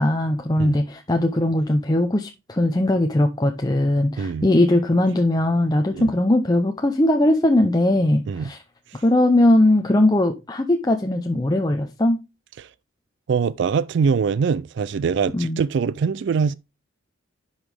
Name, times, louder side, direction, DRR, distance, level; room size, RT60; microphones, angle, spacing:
voice 1, 0.0-8.6 9.0-12.2 15.3-15.6, left 1 dB, 20° left, 0.6 m, -19 dB
voice 2, 4.2-4.5 5.9-6.1 8.3-8.5 8.9-9.0 12.6-12.7 13.3-16.5, right 6 dB, 60° right, 0.3 m, -23 dB
11.0 x 5.6 x 3.4 m
head